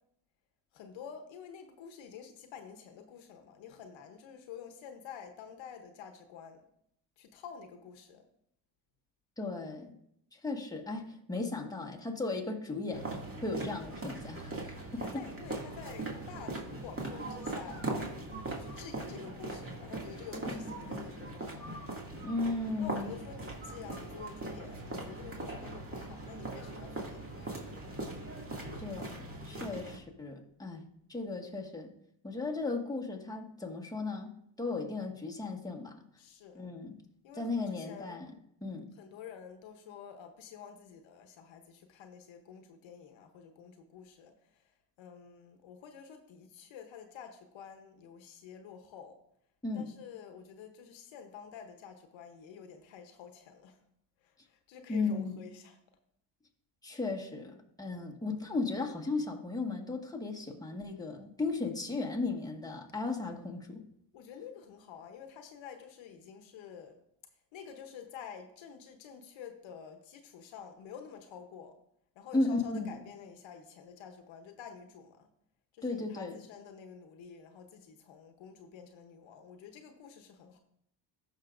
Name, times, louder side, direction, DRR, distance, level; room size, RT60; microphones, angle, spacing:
voice 1, 0.7-6.7 7.2-8.3 15.0-17.9 18.5-21.7 22.8-27.4 27.7-28.0 36.2-36.7 37.2-38.2 39.0-44.6 45.0-49.2 49.7-53.8 54.2-55.8 64.1-67.0 67.5-71.8 72.1-75.3 75.7-80.6, left 7 dB, 75° left, 6 dB, 1.0 m, -49 dB
voice 2, 9.4-9.9 10.3-13.1 13.4-15.2 20.8-21.0 22.2-23.1 28.8-30.8 31.1-31.9 32.2-35.9 36.5-36.9 37.4-38.3 38.6-38.9 49.6-49.9 54.9-55.3 56.8-63.8 72.3-72.9 75.8-76.4, left 3 dB, 10° left, 1 dB, 1.5 m, -35 dB
sound 1, 12.9-30.0, right 2 dB, 30° right, 2.2 m, -40 dB
14.5 x 5.9 x 2.5 m, 0.72 s
supercardioid pair, 75°, 46 cm